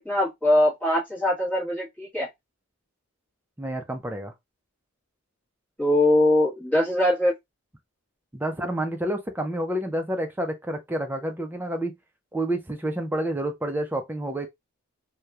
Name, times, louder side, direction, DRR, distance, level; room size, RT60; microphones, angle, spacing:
voice 1, 0.0-2.3 5.8-7.3, left 1 dB, 5° left, 1.2 m, -22 dB
voice 2, 3.6-4.3 8.3-11.9 12.3-14.5, right 1 dB, 10° right, 0.4 m, -29 dB
3.0 x 2.1 x 2.2 m
head